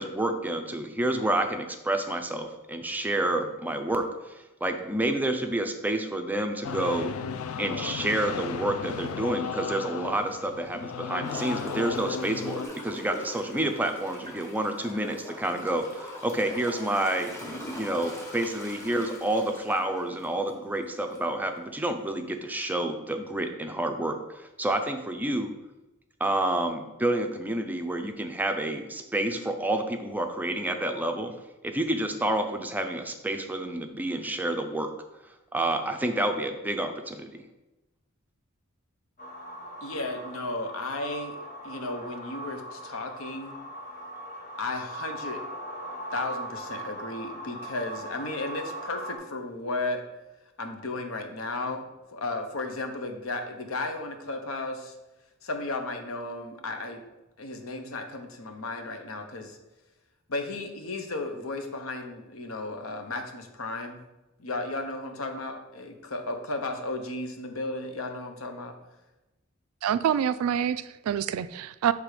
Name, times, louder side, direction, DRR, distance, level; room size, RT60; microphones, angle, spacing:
voice 1, 0.0-7.1 7.6-17.3 17.8-25.5 26.2-31.3 31.6-34.9 35.5-37.3, right 1 dB, 10° right, 5 dB, 0.5 m, -29 dB
sound 1, 6.6-12.7, left 6 dB, 85° left, 0.4 m, -35 dB
Gurgling / Toilet flush, 11.2-20.6 21.1-21.2, equal, 15° left, 1.2 m, -41 dB
sound 2, 39.2-49.2, right 1 dB, 40° left, 1.4 m, -40 dB
voice 2, 39.8-41.4 41.6-43.6 44.6-45.4 46.1-50.0 50.6-54.9 55.4-57.0 57.4-59.6 60.3-64.0 64.4-68.7, left 2 dB, 70° left, 5 dB, 0.8 m, -34 dB
voice 3, 69.8-71.9, right 9 dB, 85° right, 17 dB, 0.3 m, -26 dB
6.6 x 3.4 x 4.9 m, 1.0 s
head